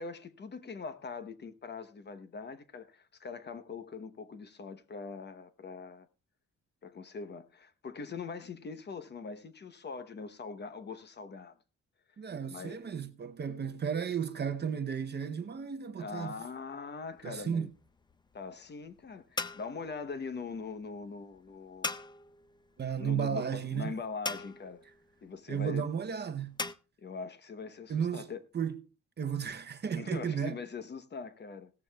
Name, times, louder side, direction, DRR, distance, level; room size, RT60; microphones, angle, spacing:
voice 1, 0.0-6.1 6.8-11.6 12.5-12.9 16.0-17.7 18.3-21.9 23.0-24.8 25.2-25.8 27.0-28.4 30.0-31.7, left 4 dB, 35° left, 0.9 m, -42 dB
voice 2, 12.2-16.3 17.2-17.7 22.8-23.9 25.5-26.6 27.9-28.3 28.5-28.8 29.2-30.6, right 7 dB, 35° right, 0.7 m, -34 dB
sound 1, 17.1-26.7, left 3 dB, 15° left, 0.5 m, -42 dB
17.0 x 14.0 x 2.3 m
wide cardioid pair, 155°, 29 cm